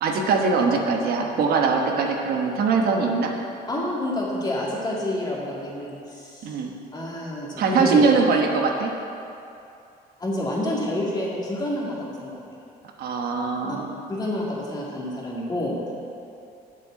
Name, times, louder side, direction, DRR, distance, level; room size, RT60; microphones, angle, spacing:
voice 1, 0.0-3.3 6.4-6.7 7.6-8.9 13.0-14.0, right 4 dB, 65° right, 2 dB, 1.1 m, -22 dB
voice 2, 3.7-6.6 6.9-8.1 10.2-12.4 13.7-13.8 14.1-15.9, left 1 dB, 25° left, -4 dB, 2.3 m, -28 dB
7.4 x 6.9 x 7.6 m, 2.6 s
cardioid pair, 110°, 17 cm